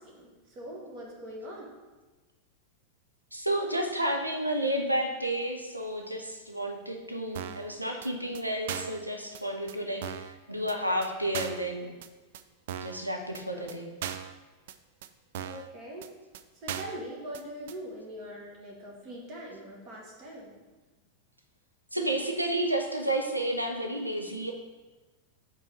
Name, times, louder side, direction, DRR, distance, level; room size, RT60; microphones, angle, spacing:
voice 1, 0.0-1.7 13.5-13.7 15.4-16.1 16.6-20.6, equal, 35° right, -2 dB, 1.3 m, -42 dB
voice 2, 3.3-11.9 12.8-13.9 21.9-24.5, right 1 dB, 85° right, 3 dB, 0.8 m, -31 dB
sound 1, 7.3-7.7 8.0-8.1 8.3-8.4 8.7-9.0 9.3-9.4 9.7-9.8 10.0-10.3 10.7-10.8 11.0-11.1 11.3-11.7 12.0-12.1 12.3-12.4 12.7-13.0 13.3-13.4 13.7-13.8 14.0-14.3 14.7-14.8 15.0-15.1 15.3-15.7 16.0-16.1 16.3-16.4 16.7-17.0 17.3-17.4 17.7-17.8, right 9 dB, 55° right, 0.3 m, -37 dB
5.4 x 3.9 x 5.9 m, 1.2 s
figure-of-eight pair, 90°, 0 cm